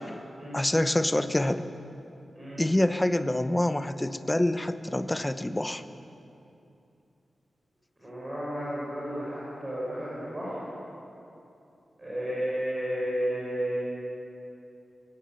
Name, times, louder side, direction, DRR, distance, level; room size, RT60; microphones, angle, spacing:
voice 1, 0.5-1.7 2.6-5.8, left 1 dB, 10° left, 10 dB, 0.8 m, -26 dB
voice 2, 8.0-10.6 12.0-13.8, equal, 15° right, -8 dB, 5.9 m, -32 dB
20.5 x 16.5 x 9.0 m, 2.8 s
wide cardioid pair, 155°, 0 cm